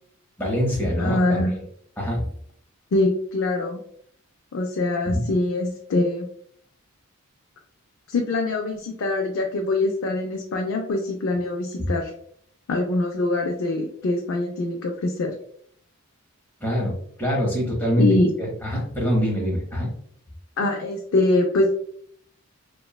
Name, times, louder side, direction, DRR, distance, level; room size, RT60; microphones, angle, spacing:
voice 1, 0.4-1.4 2.0-2.3 5.1-5.2 11.8-11.9 16.6-18.1 18.4-19.9, equal, 10° left, -3 dB, 0.7 m, -24 dB
voice 2, 1.0-1.6 2.9-3.8 4.5-6.3 8.1-12.1 12.7-15.3 18.0-18.3 20.6-21.8, left 2 dB, 60° left, 1 dB, 0.3 m, -23 dB
2.9 x 2.2 x 2.2 m, 0.64 s
head